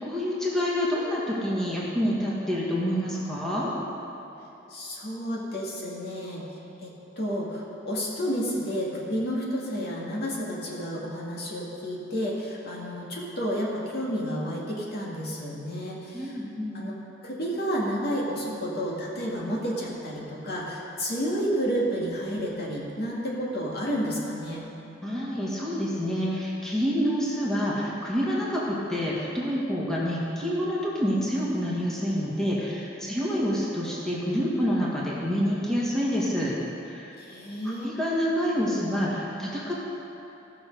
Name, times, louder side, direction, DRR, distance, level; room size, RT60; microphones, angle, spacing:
voice 1, 0.0-3.7 16.1-16.9 25.0-36.5 36.8-37.2 37.6-39.7, equal, 5° left, -7 dB, 1.7 m, -27 dB
voice 2, 4.7-6.5 6.8-16.4 16.7-17.0 17.2-24.7 37.2-37.9, equal, 55° left, -4 dB, 2.0 m, -31 dB
16.0 x 6.2 x 5.3 m, 3.0 s
head